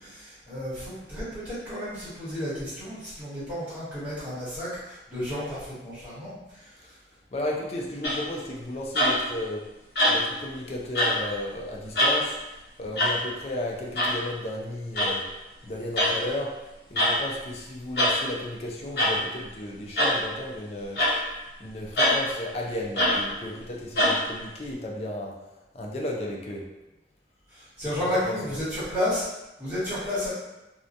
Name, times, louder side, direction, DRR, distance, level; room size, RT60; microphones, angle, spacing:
voice 1, 0.0-6.7 27.5-29.2 29.6-30.3, left 1 dB, 10° right, -12 dB, 1.1 m, -32 dB
voice 2, 7.3-9.6 10.1-12.4 12.8-15.2 15.6-16.5 16.9-21.1 21.6-25.4 25.7-26.6 28.0-28.5, left 1 dB, 35° left, -2 dB, 0.4 m, -34 dB
sound 1, 8.0-8.4 8.9-9.3 10.0-10.4 10.9-11.2 11.9-12.2 13.0-13.2 14.0-14.2 14.9-15.1 16.0-16.2 17.0-17.2 18.0-18.2 19.0-19.2 20.0-20.2 21.0-21.2 22.0-22.2 23.0-23.2 24.0-24.2, left 1 dB, 65° left, 0.8 m, -23 dB
2.7 x 2.1 x 2.5 m, 1.0 s
head